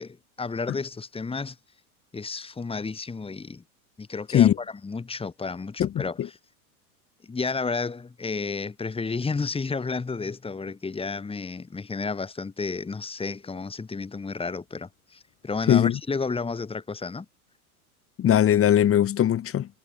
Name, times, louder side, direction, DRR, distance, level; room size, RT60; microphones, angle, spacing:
voice 1, 0.0-1.6 2.1-3.6 4.0-6.4 7.2-17.3, left 4 dB, 10° left, 8.0 m, -32 dB
voice 2, 5.8-6.3 15.7-16.0 18.2-19.7, left 10 dB, 30° left, 8.0 m, -20 dB
hypercardioid pair, 120°, 44 cm